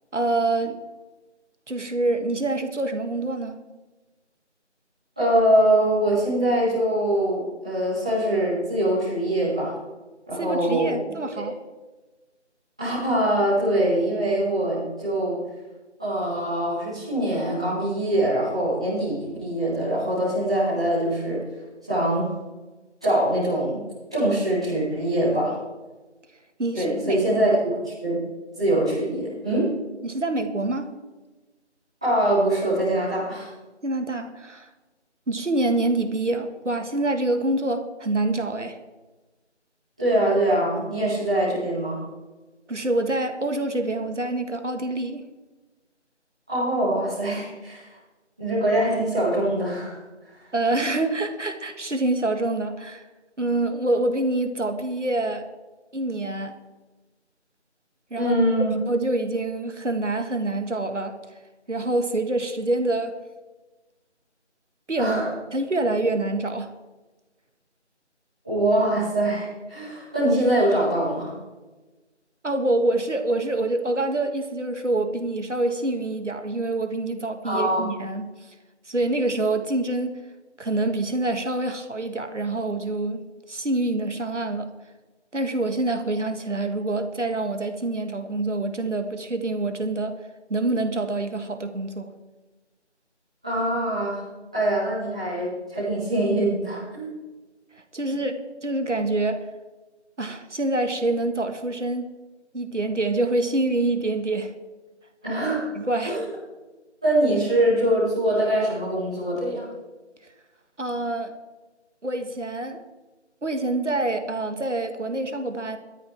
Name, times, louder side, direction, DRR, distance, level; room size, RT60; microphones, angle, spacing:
voice 1, 0.1-0.8 1.7-3.6 10.3-11.5 26.6-27.4 30.0-30.9 33.8-34.7 35.3-38.8 42.7-45.2 50.5-53.1 53.4-55.5 55.9-56.6 58.1-61.4 61.7-63.2 64.9-65.2 65.5-66.7 72.4-78.5 78.9-80.2 80.6-84.7 85.3-90.2 90.5-92.1 97.9-99.5 100.2-102.2 102.5-104.5 105.7-106.2 110.8-111.3 112.0-112.8 113.4-115.8, right 2 dB, 80° right, 7 dB, 2.0 m, -26 dB
voice 2, 5.2-9.7 10.3-11.4 12.8-15.4 16.0-21.4 21.9-22.2 23.0-23.8 24.1-25.5 26.7-28.2 28.6-29.7 32.0-33.5 40.0-42.0 46.5-47.9 48.4-50.0 58.1-58.7 65.0-65.3 68.4-71.3 77.4-77.8 93.4-94.2 94.5-97.1 105.2-105.6 106.0-106.2 107.0-109.7, right 1 dB, 5° right, -15 dB, 2.3 m, -23 dB
17.0 x 13.0 x 3.6 m, 1.2 s
figure-of-eight pair, 180°, 36 cm